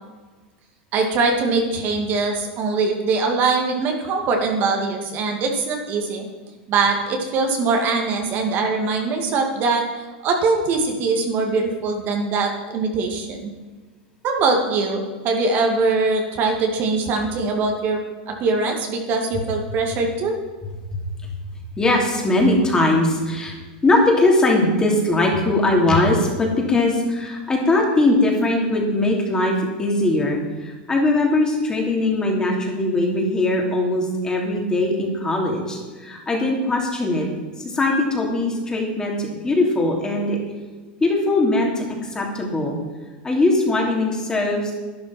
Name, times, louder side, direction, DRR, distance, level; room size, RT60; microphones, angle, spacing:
voice 1, 0.9-6.2 6.7-13.5 14.2-18.0 18.3-20.4, right 3 dB, 40° right, 2 dB, 2.2 m, -22 dB
voice 2, 21.8-23.5 23.8-37.3 37.6-40.4 41.0-42.8 43.2-44.7, left 2 dB, 15° left, 0 dB, 3.0 m, -20 dB
11.5 x 10.5 x 6.0 m, 1.3 s
supercardioid pair, 135°, 5 cm